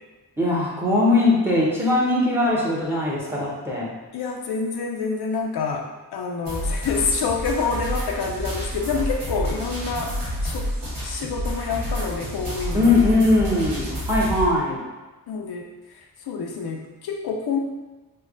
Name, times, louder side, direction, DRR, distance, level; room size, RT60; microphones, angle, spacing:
voice 1, 0.4-3.9 12.7-14.8, left 2 dB, 5° right, -5 dB, 1.0 m, -20 dB
voice 2, 4.1-5.8 6.1-10.2 10.4-10.7 11.0-13.5 15.3-15.7 15.9-17.6, left 5 dB, 65° left, 0 dB, 0.5 m, -27 dB
sound 1, 6.5-14.4, equal, 55° right, 1.2 m, -29 dB
3.2 x 2.3 x 3.7 m, 1.2 s
cardioid pair, 85°, 41 cm